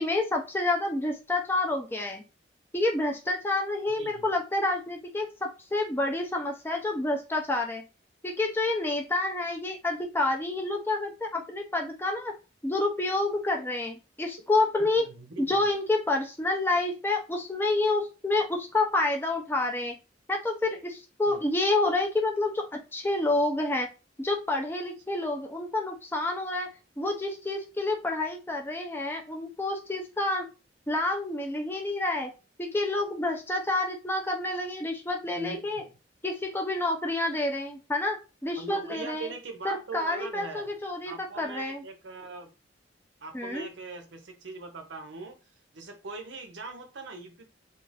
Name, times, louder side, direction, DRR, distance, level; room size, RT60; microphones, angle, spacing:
voice 1, 0.0-2.2 2.7-7.8 8.2-12.3 12.6-15.0 15.4-19.9 20.3-22.7 22.9-23.9 24.2-26.7 27.0-30.5 30.9-32.3 32.6-35.8 36.2-38.2 38.4-39.3 39.6-41.8 43.3-43.7, left 2 dB, 10° left, 0.5 m, -28 dB
voice 2, 4.0-4.3 14.8-15.7 21.3-21.4 35.3-35.9 38.6-40.7 41.1-42.5 43.2-45.4 45.7-47.5, right 3 dB, 70° right, 0.6 m, -41 dB
2.4 x 2.4 x 3.2 m
head